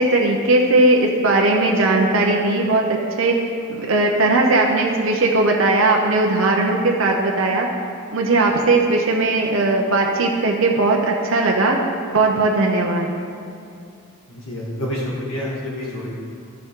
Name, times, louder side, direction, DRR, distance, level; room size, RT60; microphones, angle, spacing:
voice 1, 0.0-3.4 3.7-7.7 8.1-11.8 12.1-13.1, right 2 dB, 65° right, 0 dB, 0.8 m, -18 dB
voice 2, 14.3-16.1, left 1 dB, 65° left, -5 dB, 1.9 m, -28 dB
13.0 x 6.8 x 3.8 m, 2.5 s
head